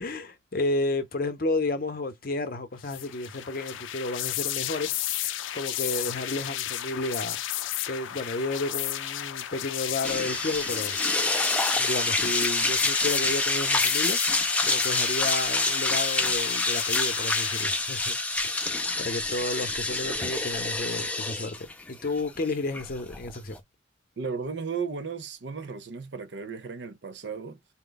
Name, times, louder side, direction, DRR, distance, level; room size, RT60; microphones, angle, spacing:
voice 1, 0.0-4.9 5.5-11.0 11.8-18.2 18.4-23.6, left 2 dB, 50° left, 0.7 m, -32 dB
sound 1, 2.8-17.7, left 12 dB, 90° left, 0.4 m, -33 dB
sound 2, 10.0-23.6, left 2 dB, 5° left, 0.4 m, -27 dB
voice 2, 24.2-27.6, right 5 dB, 65° right, 0.5 m, -35 dB
4.3 x 2.2 x 3.9 m
head